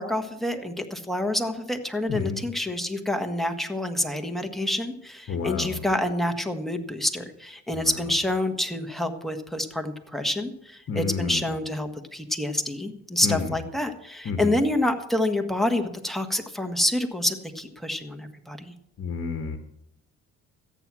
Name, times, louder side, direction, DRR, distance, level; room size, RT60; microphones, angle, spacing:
voice 1, 0.0-18.7, left 1 dB, ahead, 6 dB, 1.6 m, -27 dB
voice 2, 2.1-2.4 5.3-5.8 7.8-8.0 10.9-11.4 13.2-13.5 14.2-14.6 19.0-19.6, left 5 dB, 50° left, 6 dB, 1.5 m, -30 dB
14.0 x 9.2 x 6.2 m, 0.80 s
cardioid pair, 90°, 30 cm